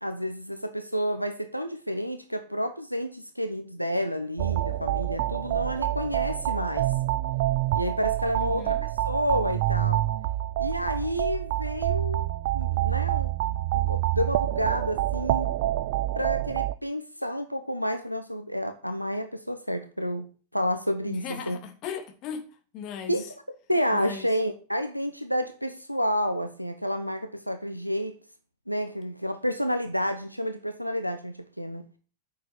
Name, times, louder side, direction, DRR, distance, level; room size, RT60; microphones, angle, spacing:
voice 1, 0.0-6.9 7.7-8.8 9.0-10.0 10.6-12.3 12.5-15.5 16.2-20.3 20.5-21.6 23.1-23.2 23.7-28.2 28.7-31.8, equal, 90° left, 1.0 m, -30 dB
sound 1, 4.4-16.7, right 14 dB, 50° right, 0.6 m, -27 dB
voice 2, 8.3-8.9 21.1-22.5 22.7-23.3 23.9-24.3, left 7 dB, 40° left, 2.8 m, -38 dB
9.6 x 6.7 x 8.7 m
figure-of-eight pair, 90°, 0 cm